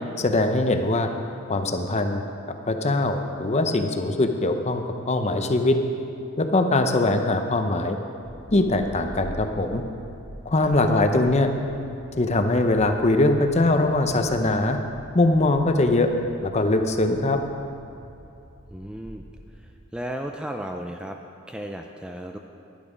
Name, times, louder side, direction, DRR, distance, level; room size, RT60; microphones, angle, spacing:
voice 1, 0.2-1.1 1.5-2.2 2.7-5.8 6.4-8.0 8.5-9.8 10.5-11.5 12.2-14.8 15.1-16.1 16.4-17.4, left 2 dB, 30° left, 6 dB, 0.7 m, -22 dB
voice 2, 10.6-11.0 18.7-19.2 19.6-21.2 21.5-22.4, right 1 dB, 5° right, 3 dB, 0.3 m, -35 dB
sound 1, 17.3-19.7, equal, 75° right, 2.5 m, -45 dB
11.0 x 11.0 x 5.0 m, 2.7 s
head